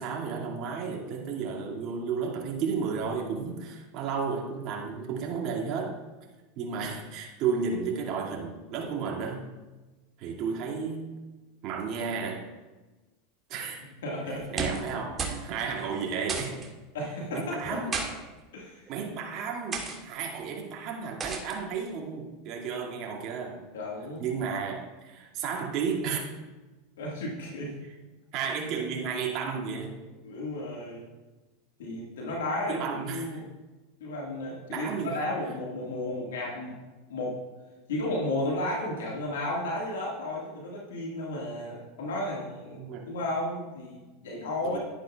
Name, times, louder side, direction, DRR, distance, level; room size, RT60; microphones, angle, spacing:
voice 1, 0.0-5.9 6.6-9.4 10.2-11.1 11.6-12.5 13.5-13.9 14.3-16.6 17.3-18.0 18.9-23.6 24.2-26.2 28.3-30.0 32.7-33.4 34.7-35.2 42.8-43.1 44.6-44.8, right 5 dB, 50° right, -2 dB, 2.2 m, -33 dB
voice 2, 14.0-14.7 16.9-17.8 18.5-18.8 23.7-24.2 27.0-27.8 30.2-31.0 31.8-33.5 34.0-36.8 37.1-37.4 37.9-42.8 43.1-44.8, left 1 dB, 80° left, -2 dB, 1.8 m, -33 dB
sound 1, 14.4-14.9 15.2-15.5 15.7-15.8 16.3-16.7 17.6-18.1 18.9-19.1 19.7-20.0 21.2-21.6, right 5 dB, 30° right, 1.8 m, -33 dB
11.5 x 10.5 x 2.4 m, 1.2 s
hypercardioid pair, 95°, 0 cm